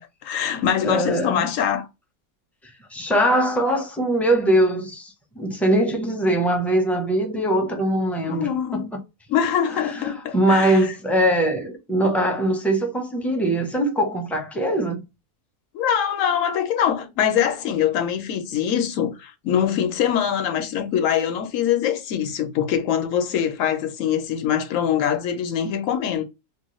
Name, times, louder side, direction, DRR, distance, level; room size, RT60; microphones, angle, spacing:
voice 1, 0.2-1.9 8.3-8.9 9.3-10.9 15.7-26.2, left 9 dB, 70° left, 1.0 m, -23 dB
voice 2, 0.8-1.5 2.9-9.0 9.7-15.0, right 1 dB, ahead, 0.3 m, -22 dB
3.0 x 2.2 x 3.0 m
omnidirectional pair, 1.5 m